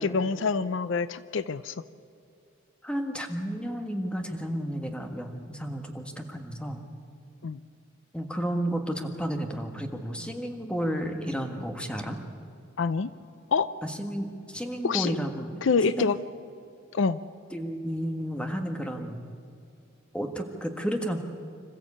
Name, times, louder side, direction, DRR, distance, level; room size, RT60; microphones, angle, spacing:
voice 1, 0.0-1.8 7.4-7.6 12.8-13.1 13.5-13.7 14.8-15.1 15.6-16.2 16.9-17.2, left 5 dB, 65° left, 15 dB, 0.5 m, -26 dB
voice 2, 2.8-6.8 8.1-12.2 13.8-15.6 16.0-16.1 17.5-19.2 20.1-21.2, equal, 5° left, 4 dB, 1.6 m, -32 dB
26.5 x 14.5 x 8.5 m, 2.5 s
head